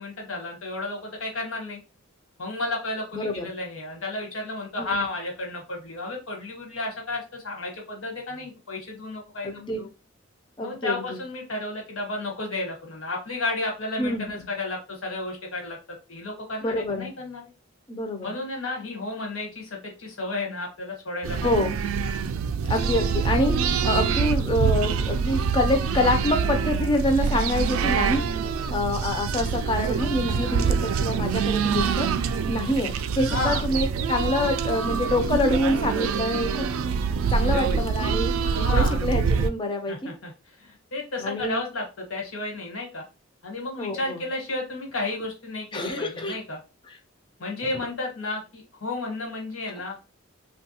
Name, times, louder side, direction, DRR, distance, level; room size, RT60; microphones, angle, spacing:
voice 1, 0.0-1.8 2.4-9.9 10.6-15.8 16.1-17.4 18.2-21.5 33.3-33.6 38.5-39.0 39.9-40.3 40.6-43.0 43.4-46.6 47.4-50.0, left 2 dB, 75° left, 0 dB, 1.2 m, -32 dB
voice 2, 3.1-3.5 4.8-5.1 9.4-9.8 10.6-11.2 14.0-14.3 16.6-17.1 17.9-18.3 21.4-21.7 22.7-23.6 23.8-28.2 28.7-32.1 32.5-36.7 37.3-38.3 38.6-40.1 41.2-41.6 43.8-44.2 45.7-46.4 46.9-47.0 47.6-47.7, left 1 dB, 20° left, 5 dB, 0.4 m, -26 dB
sound 1, 21.2-39.5, right 6 dB, 75° right, 0.3 m, -25 dB
3.2 x 2.3 x 2.8 m, 0.29 s
head